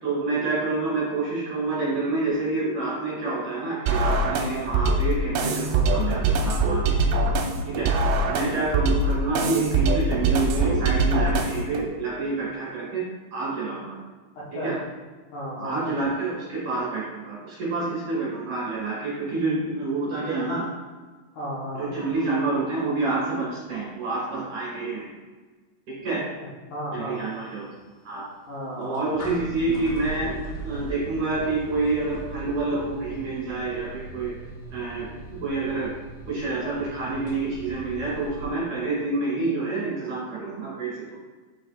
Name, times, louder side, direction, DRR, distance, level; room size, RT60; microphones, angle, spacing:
voice 1, 0.0-6.8 7.7-7.9 8.3-13.0 13.3-13.9 14.6-14.8 15.6-20.7 21.7-25.1 25.9-26.2 26.9-27.7 28.0-28.2 28.8-30.4 30.6-34.3 34.7-35.1 35.4-35.9 36.3-41.1, right 3 dB, 55° right, -6 dB, 2.7 m, -28 dB
sound 1, 3.9-11.8, right 2 dB, 80° right, 2.9 m, -23 dB
voice 2, 14.4-14.7 15.3-15.8 21.3-21.9 26.4-27.2 28.5-29.1, equal, 85° left, -8 dB, 1.7 m, -34 dB
sound 2, 27.2-38.5, right 2 dB, 65° left, 2.7 m, -40 dB
7.2 x 6.4 x 2.4 m, 1.3 s
omnidirectional pair, 5.6 m